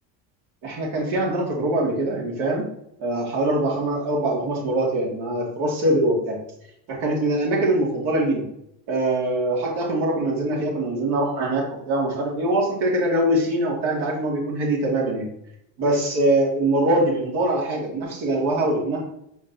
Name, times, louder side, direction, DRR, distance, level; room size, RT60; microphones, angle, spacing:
voice 1, 0.6-2.7 3.0-6.4 6.9-8.5 8.9-15.3 15.8-19.0, right 1 dB, 65° right, -2 dB, 2.4 m, -23 dB
8.5 x 4.9 x 2.8 m, 0.74 s
cardioid pair, 130°, 43 cm